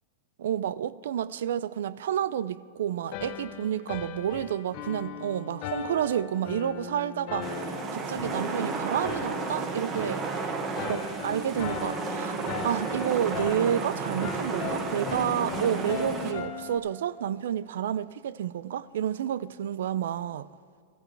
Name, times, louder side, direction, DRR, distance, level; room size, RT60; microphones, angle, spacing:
voice 1, 0.4-7.5 7.9-10.2 10.8-20.5, right 10 dB, 85° right, 0.4 m, -30 dB
sound 1, 3.1-16.8, left 8 dB, 40° left, 0.9 m, -38 dB
sound 2, 7.4-16.3, right 4 dB, 25° right, 0.9 m, -33 dB
17.5 x 14.5 x 3.3 m
supercardioid pair, 170°, 0 cm